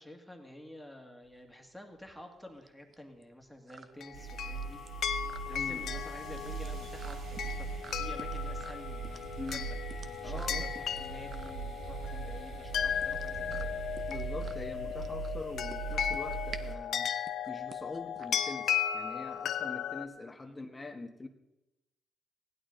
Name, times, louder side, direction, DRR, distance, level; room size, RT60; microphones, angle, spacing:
voice 1, 0.0-4.8 5.1-7.7 7.9-9.8 10.0-13.8 20.5-20.6, left 1 dB, ahead, 2 dB, 2.0 m, -50 dB
sound 1, 1.2-19.0, right 5 dB, 45° right, 0.8 m, -52 dB
sound 2, 4.0-20.1, left 9 dB, 65° left, 0.7 m, -36 dB
sound 3, 4.1-16.7, right 6 dB, 65° right, 1.7 m, -40 dB
voice 2, 5.5-5.8 9.4-9.6 10.2-10.7 14.1-17.1 17.5-21.3, left 3 dB, 20° left, 6 dB, 1.2 m, -43 dB
16.0 x 11.0 x 3.9 m, 0.95 s
cardioid pair, 90°, 0 cm